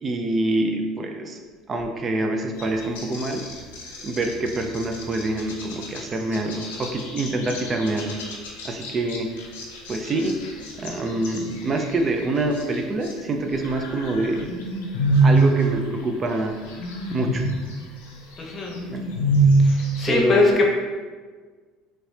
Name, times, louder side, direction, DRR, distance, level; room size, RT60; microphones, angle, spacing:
voice 1, 0.0-1.4 1.7-3.4 4.0-8.2 8.6-9.3 9.9-10.4 10.8-14.5 15.2-16.6 17.1-17.4 18.9-19.0 20.1-20.5, right 2 dB, 35° right, 3 dB, 0.4 m, -25 dB
sound 1, 2.6-13.2 13.5-20.2, right 2 dB, 85° left, 0.5 m, -27 dB
voice 2, 18.4-18.8 19.6-20.7, left 3 dB, 30° left, 0 dB, 0.8 m, -21 dB
3.1 x 3.1 x 2.7 m, 1.4 s
hypercardioid pair, 80°, 0 cm